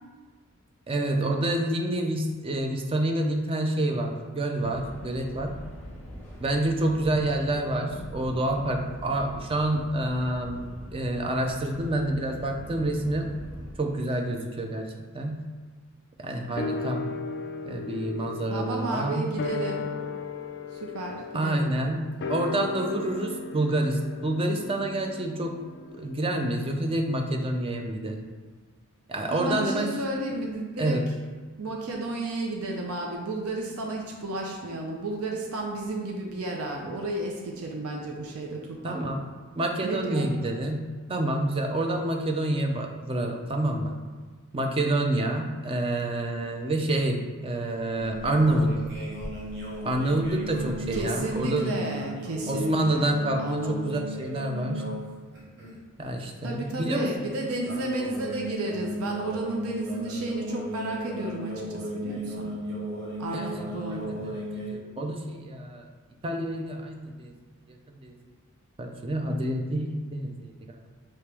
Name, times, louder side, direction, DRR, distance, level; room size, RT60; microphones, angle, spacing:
voice 1, 0.9-5.6 6.4-10.6 10.9-13.3 13.8-15.4 16.2-17.0 17.7-19.3 21.3-22.0 22.3-25.6 25.9-28.3 29.1-30.0 30.8-31.1 38.8-39.2 39.6-40.8 41.1-43.9 44.5-48.9 49.8-51.7 52.5-54.8 56.0-57.1 63.3-65.8 66.2-67.3 67.7-68.1 68.8-70.9, right 1 dB, 25° right, 3 dB, 0.4 m, -28 dB
sound 1, 4.6-13.7, equal, 5° left, 1.0 m, -42 dB
sound 2, 16.6-27.2 27.4-27.5, left 4 dB, 50° left, 0.4 m, -36 dB
voice 2, 18.5-19.9 20.7-21.8 29.3-31.0 31.6-39.0 39.8-40.3 50.9-53.8 56.4-62.5 63.2-64.0, right 2 dB, 75° right, 0 dB, 0.5 m, -32 dB
sound 3, 47.9-55.0 55.3-55.8 57.7-64.7, equal, 60° right, 1.1 m, -35 dB
4.7 x 2.9 x 3.3 m, 1.4 s
head